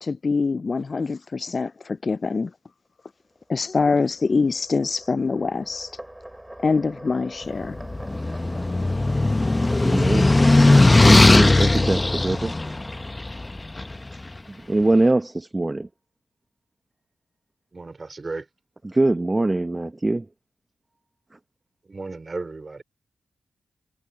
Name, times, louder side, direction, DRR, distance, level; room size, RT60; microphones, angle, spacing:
voice 1, 0.0-2.5 3.5-5.9 6.6-7.8, left 4 dB, 50° left, 0.4 m, -24 dB
sound 1, 3.6-14.3, right 1 dB, 10° right, 6.2 m, -42 dB
sound 2, 7.7-14.0, left 2 dB, 25° left, 1.0 m, -17 dB
voice 2, 9.8-10.3 11.0-12.5 14.5-15.9 18.8-20.3, right 2 dB, 25° right, 1.1 m, -22 dB
voice 3, 17.7-18.5 21.8-22.8, right 3 dB, 40° right, 4.6 m, -34 dB
cardioid pair, 50°, 0 cm